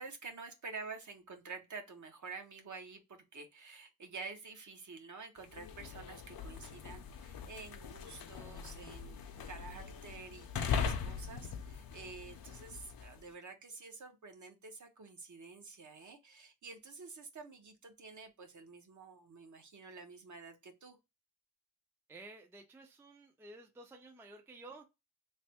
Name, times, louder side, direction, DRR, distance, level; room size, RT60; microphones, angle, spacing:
voice 1, 0.0-9.2 9.4-21.0, right 4 dB, 50° right, 0.8 m, -49 dB
sound 1, 5.4-13.2, left 6 dB, 65° left, 0.6 m, -41 dB
voice 2, 22.1-24.8, right 2 dB, 5° right, 0.4 m, -53 dB
3.3 x 2.0 x 4.2 m
wide cardioid pair, 140°, 39 cm